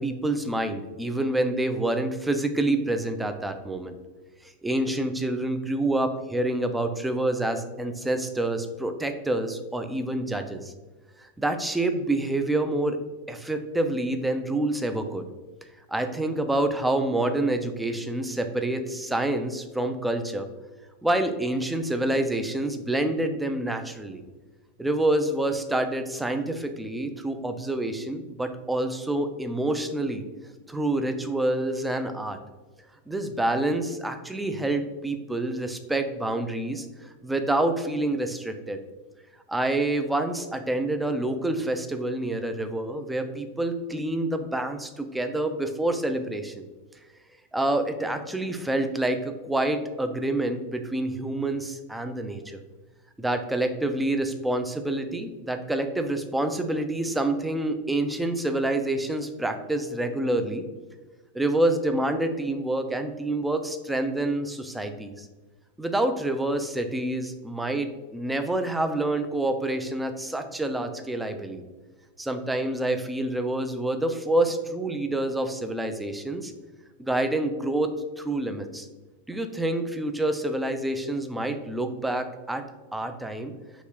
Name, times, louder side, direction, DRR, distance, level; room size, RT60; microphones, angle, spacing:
voice 1, 0.0-3.9 4.4-10.7 11.2-13.0 13.3-15.2 15.9-20.5 21.0-24.2 24.8-30.2 30.7-32.4 33.1-38.8 39.5-46.6 47.5-52.6 53.2-60.6 61.3-65.3 65.8-71.6 72.2-76.5 77.0-77.9 78.2-78.9 79.3-82.6 82.9-83.5, right 1 dB, 5° right, 7 dB, 0.3 m, -27 dB
3.0 x 2.8 x 3.6 m, 1.2 s
figure-of-eight pair, 90°, 0 cm